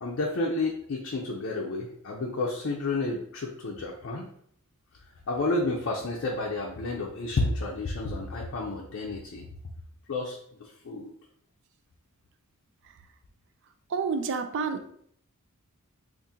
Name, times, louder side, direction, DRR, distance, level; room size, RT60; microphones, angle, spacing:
voice 1, 0.0-4.3 5.3-9.5 10.1-11.1, left 2 dB, 60° left, -1 dB, 0.5 m, -31 dB
voice 2, 13.9-14.9, right 5 dB, 60° right, 8 dB, 0.4 m, -29 dB
2.7 x 2.5 x 3.6 m, 0.66 s
head